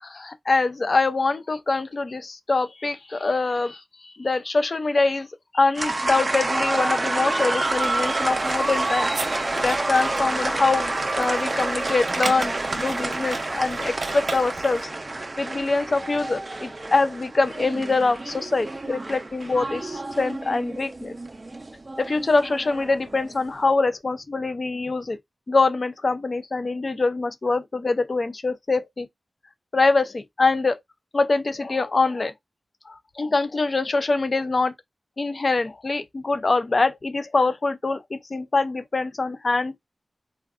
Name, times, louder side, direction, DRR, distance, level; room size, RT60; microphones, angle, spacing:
voice 1, 0.0-5.3 5.5-9.1 9.6-14.9 15.4-21.1 22.0-25.2 25.5-29.1 29.7-30.8 31.1-32.3 32.9-34.7 35.2-39.8, left 3 dB, 50° left, 0.4 m, -24 dB
sound 1, 5.7-23.4, right 2 dB, 40° right, 0.5 m, -28 dB
sound 2, 7.6-14.8, right 3 dB, 75° right, 0.7 m, -37 dB
3.5 x 2.2 x 2.3 m
wide cardioid pair, 75°, 0 cm